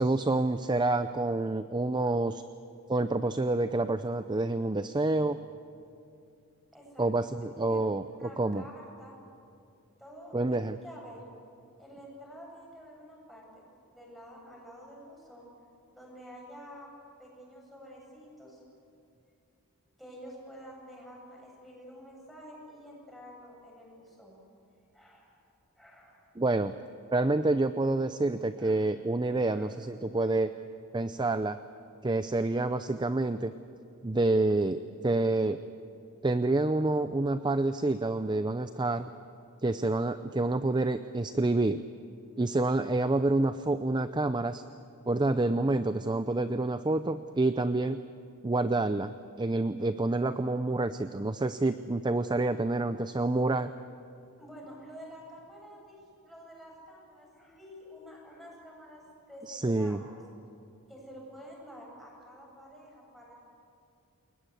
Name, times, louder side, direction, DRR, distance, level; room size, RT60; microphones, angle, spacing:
voice 1, 0.0-2.4 2.9-5.4 7.0-8.6 10.3-10.8 26.4-26.7 27.1-30.5 30.9-31.6 32.0-33.5 34.0-35.6 36.2-39.1 39.6-41.8 42.4-44.6 45.1-48.0 48.4-53.7 59.5-60.0, right 2 dB, 20° right, 11 dB, 0.6 m, -28 dB
voice 2, 6.7-7.1 7.7-7.9 8.2-9.2 10.0-11.2 11.8-13.6 13.9-15.5 15.9-16.9 17.2-18.6 20.0-24.4 24.9-25.4 25.8-26.3 28.6-28.7 29.5-29.7 30.2-30.3 54.4-59.0 59.3-60.2 60.9-63.3, equal, ahead, -3 dB, 7.9 m, -49 dB
29.0 x 21.5 x 8.3 m, 2.6 s
head